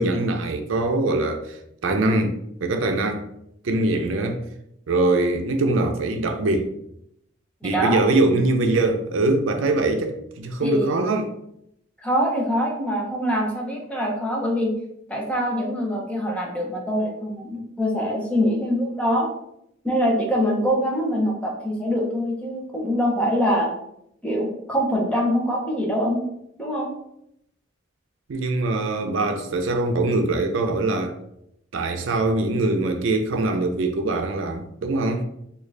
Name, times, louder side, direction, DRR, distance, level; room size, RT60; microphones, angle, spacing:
voice 1, 0.0-2.4 2.6-3.2 3.6-4.4 4.9-6.7 7.6-11.3 28.3-31.2 31.7-35.2, right 2 dB, 85° right, 0.5 m, -23 dB
voice 2, 7.6-8.0 10.6-10.9 12.0-14.8 15.1-19.3 19.8-23.7 24.2-26.2 26.6-26.9, equal, 5° left, 0.7 m, -24 dB
3.7 x 2.4 x 3.2 m
head